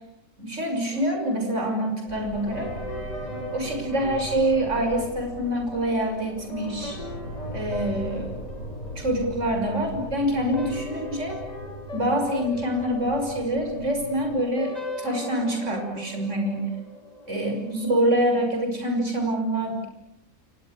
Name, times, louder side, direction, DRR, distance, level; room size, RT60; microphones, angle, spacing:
voice 1, 0.4-2.7 3.5-7.0 7.5-8.3 9.0-11.4 11.9-14.7 15.0-16.7 17.3-19.9, right 1 dB, 50° right, 3 dB, 6.5 m, -26 dB
sound 1, 0.9-18.3, left 1 dB, 25° left, 5.4 m, -39 dB
sound 2, 2.1-14.4, equal, 65° left, 7.4 m, -39 dB
29.5 x 29.5 x 6.8 m, 0.79 s
omnidirectional pair, 1.6 m